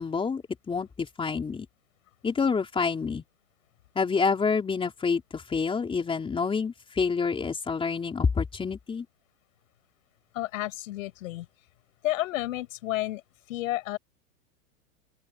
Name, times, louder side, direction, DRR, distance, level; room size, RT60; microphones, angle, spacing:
voice 1, 0.0-1.7 2.2-3.2 4.0-9.1, left 5 dB, 10° left, 4.0 m, -28 dB
voice 2, 10.3-11.5 12.0-13.2 13.5-14.0, left 16 dB, 65° left, 6.8 m, -31 dB
open air
supercardioid pair, 150°, 43 cm